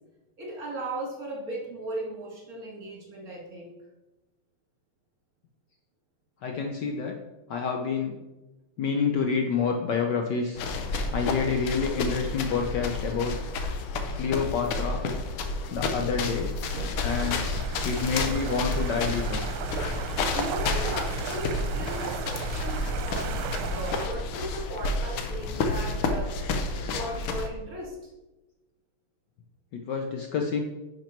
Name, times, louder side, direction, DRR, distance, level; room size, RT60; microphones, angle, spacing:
voice 1, 0.4-3.8 16.7-17.1 20.3-26.5 26.7-28.0, right 1 dB, 40° right, -3 dB, 2.7 m, -37 dB
voice 2, 6.4-7.2 7.5-8.2 8.8-10.7 11.1-13.3 14.2-15.0 15.7-16.5 17.0-17.4 17.8-19.5 29.7-30.6, left 5 dB, 65° left, 2 dB, 1.2 m, -28 dB
sound 1, 10.6-27.5, left 3 dB, 85° left, 1.9 m, -30 dB
sound 2, 17.1-24.1, right 7 dB, 75° right, 1.6 m, -35 dB
10.5 x 6.1 x 4.5 m, 1.1 s
omnidirectional pair, 2.4 m